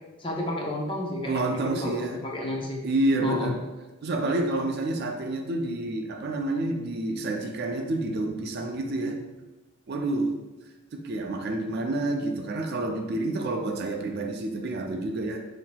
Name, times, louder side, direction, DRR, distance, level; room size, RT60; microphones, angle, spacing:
voice 1, 0.2-2.0 2.2-2.8 3.2-3.5, left 1 dB, 25° left, -2 dB, 0.6 m, -31 dB
voice 2, 1.2-2.2 2.8-3.6 4.0-9.2 9.9-10.3 10.9-15.4, right 2 dB, 50° right, 3 dB, 0.4 m, -28 dB
5.7 x 2.7 x 2.2 m, 1.1 s
head